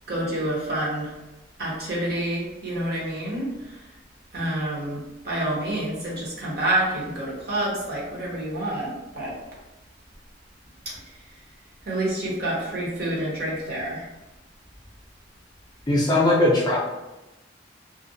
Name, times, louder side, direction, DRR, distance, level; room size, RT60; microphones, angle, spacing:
voice 1, 0.1-1.2 1.6-3.9 4.3-9.4 10.8-11.0 11.8-14.1, right 1 dB, 55° right, -4 dB, 0.8 m, -28 dB
voice 2, 15.9-16.8, left 1 dB, 20° left, -5 dB, 0.5 m, -19 dB
2.5 x 2.1 x 2.6 m, 1.0 s
head